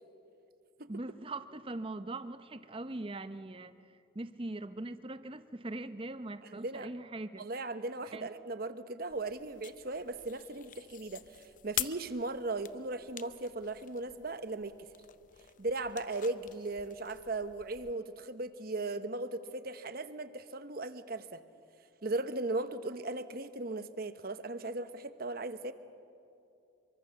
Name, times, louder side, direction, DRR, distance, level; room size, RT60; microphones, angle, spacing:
voice 1, 0.9-3.7 4.1-7.5 8.1-8.3, right 2 dB, 25° right, 12 dB, 0.7 m, -41 dB
voice 2, 6.4-6.9 7.3-14.8 15.6-21.4 22.0-25.7, right 2 dB, 50° right, 11 dB, 1.0 m, -37 dB
sound 1, 9.1-17.9, left 12 dB, 40° left, 0.6 m, -45 dB
24.5 x 23.5 x 7.0 m, 2.6 s
head